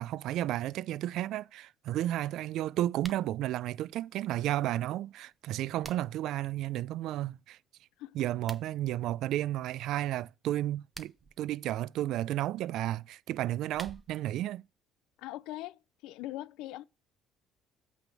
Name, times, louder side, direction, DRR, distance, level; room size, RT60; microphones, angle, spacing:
voice 1, 0.0-7.6 8.1-11.1 11.4-14.6, right 13 dB, 70° right, 0.3 m, -32 dB
sound 1, 3.0-3.3 5.3-6.3 8.3-8.7 10.7-11.4 13.4-14.3, right 3 dB, 20° right, 0.7 m, -49 dB
voice 2, 15.2-16.8, left 16 dB, 80° left, 0.4 m, -41 dB
8.2 x 3.4 x 5.9 m
cardioid pair, 110°, 0 cm